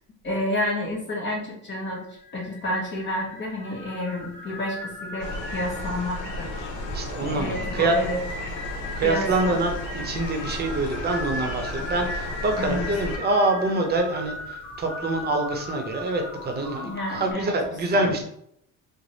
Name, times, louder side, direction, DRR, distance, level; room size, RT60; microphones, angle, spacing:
voice 1, 0.2-2.1 2.3-6.7 7.2-8.2 9.0-9.6 12.6-12.8 16.8-17.5 17.9-18.1, left 1 dB, 35° left, -3 dB, 1.0 m, -30 dB
sound 1, 1.6-17.3, left 1 dB, 5° left, 0.8 m, -38 dB
sound 2, 5.2-13.2, left 1 dB, 75° left, 0.9 m, -34 dB
voice 2, 6.9-8.0 8.9-18.2, right 2 dB, 30° right, 3 dB, 0.7 m, -25 dB
3.3 x 2.1 x 3.9 m, 0.72 s
cardioid pair, 115°, 32 cm